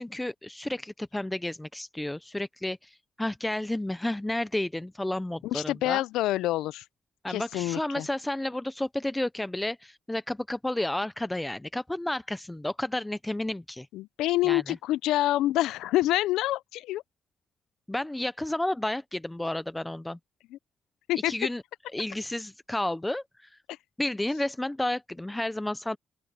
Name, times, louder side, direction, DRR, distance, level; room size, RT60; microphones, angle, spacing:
voice 1, 0.0-6.0 7.2-13.9 14.5-14.8 17.9-20.2 21.3-21.6 21.9-23.6 24.0-26.0, left 1 dB, 10° left, 0.5 m, -31 dB
voice 2, 5.4-6.8 7.3-8.1 13.9-17.0 21.1-21.3, left 15 dB, 90° left, 0.4 m, -27 dB
open air
cardioid pair, 90°, 0 cm